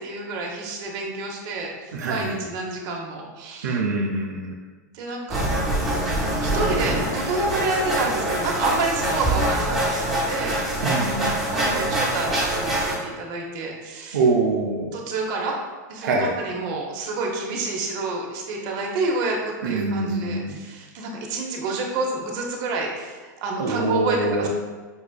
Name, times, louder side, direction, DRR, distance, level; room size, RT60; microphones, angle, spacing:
voice 1, 0.0-3.8 4.9-5.5 6.4-10.6 11.2-14.2 14.9-15.6 15.9-24.5, right 3 dB, 45° right, 0 dB, 0.7 m, -28 dB
voice 2, 1.9-2.4 3.6-4.6 10.8-11.4 14.1-14.9 16.0-16.3 19.6-20.6 23.6-24.5, right 3 dB, 85° right, -1 dB, 0.5 m, -24 dB
sound 1, 5.3-12.9, right 1 dB, ahead, 1.1 m, -24 dB
5.3 x 2.4 x 2.2 m, 1.3 s
hypercardioid pair, 125°, 10 cm